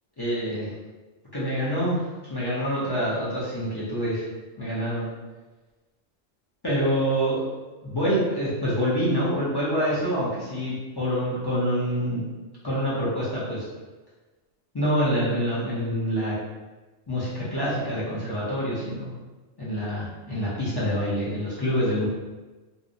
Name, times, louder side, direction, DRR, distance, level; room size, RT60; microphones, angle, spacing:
voice 1, 0.2-0.7 1.3-2.0 2.3-4.2 4.6-5.1 6.6-7.4 7.8-12.2 12.6-13.7 14.7-16.4 17.1-19.1 19.6-22.1, equal, 40° left, -9 dB, 0.3 m, -26 dB
2.7 x 2.0 x 2.5 m, 1.2 s
omnidirectional pair, 1.4 m